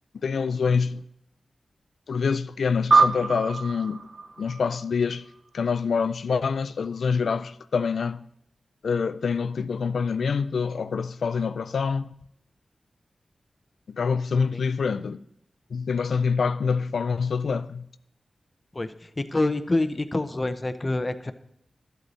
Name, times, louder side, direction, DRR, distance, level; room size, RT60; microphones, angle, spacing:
voice 1, 0.2-1.0 2.1-4.0 4.4-5.2 5.5-8.2 8.8-12.1 13.9-15.3 15.7-17.9, left 5 dB, 85° left, 0.3 m, -26 dB
sound 1, 2.9-5.6, right 4 dB, 45° right, 0.7 m, -24 dB
voice 2, 18.7-21.3, left 2 dB, 30° left, 0.6 m, -27 dB
12.0 x 8.0 x 4.1 m
wide cardioid pair, 80°, 0 cm